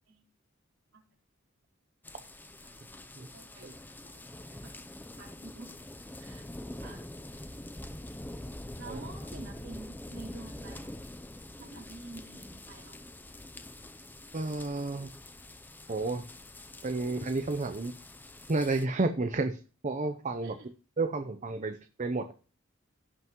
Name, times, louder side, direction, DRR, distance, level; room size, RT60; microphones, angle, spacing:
sound 1, 2.0-18.9, left 1 dB, 10° left, 0.6 m, -45 dB
voice 1, 2.6-3.7 4.0-4.9 5.2-5.7 6.2-6.5 6.8-7.0 8.8-11.0 11.6-13.0 20.4-20.7, right 2 dB, 65° right, -2 dB, 4.3 m, -49 dB
voice 2, 14.3-15.1 15.9-16.3 16.8-17.9 18.5-20.6 21.0-22.3, right 3 dB, 35° right, 7 dB, 0.7 m, -31 dB
16.5 x 5.7 x 3.0 m, 0.37 s
head